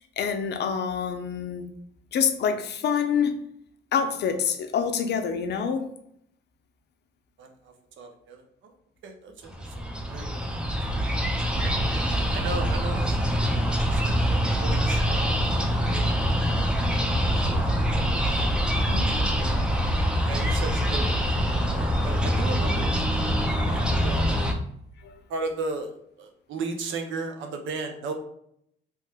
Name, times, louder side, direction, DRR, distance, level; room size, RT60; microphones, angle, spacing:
voice 1, 0.2-1.7 2.1-3.4 3.9-5.8 18.8-19.1 23.5-24.3 25.0-25.1, left 7 dB, 60° left, 7 dB, 0.5 m, -27 dB
voice 2, 7.4-8.7 9.0-10.5 11.5-11.6 12.3-15.4 15.9-16.1 16.4-16.6 17.2-17.8 18.8-19.1 20.2-23.0 23.7-24.4 25.3-28.1, right 3 dB, 75° right, 4 dB, 0.6 m, -36 dB
sound 1, 9.4-24.5, equal, 5° right, 0.4 m, -24 dB
3.0 x 2.1 x 3.4 m, 0.71 s
cardioid pair, 90°, 20 cm